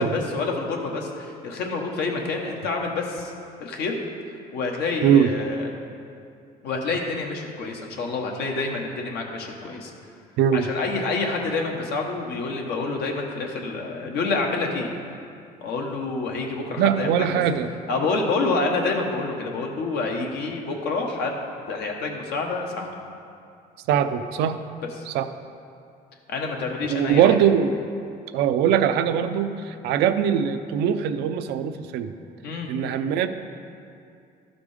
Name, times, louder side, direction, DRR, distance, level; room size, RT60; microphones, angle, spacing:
voice 1, 0.0-3.3 3.6-4.0 4.5-5.7 6.6-9.9 10.5-14.9 15.6-17.4 17.9-21.4 21.7-22.9 25.0-25.1 26.3-27.4 32.4-32.7, left 3 dB, 75° left, 1 dB, 1.3 m, -28 dB
voice 2, 10.4-10.7 16.8-17.7 23.9-24.6 25.1-25.3 26.9-27.7 28.3-32.1 32.7-33.3, right 9 dB, 85° right, 9 dB, 0.5 m, -21 dB
12.0 x 5.1 x 5.0 m, 2.5 s
cardioid pair, 110°, 17 cm